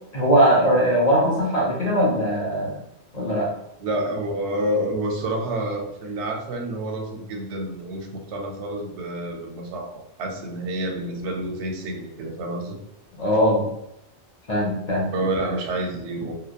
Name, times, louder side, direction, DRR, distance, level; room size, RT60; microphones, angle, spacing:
voice 1, 0.1-2.8 3.1-3.5 13.1-13.7 14.5-15.1, equal, 55° left, -3 dB, 0.4 m, -20 dB
voice 2, 3.8-12.8 15.1-16.4, right 1 dB, 90° right, 2 dB, 0.9 m, -28 dB
2.8 x 2.0 x 2.2 m, 0.85 s
omnidirectional pair, 1.1 m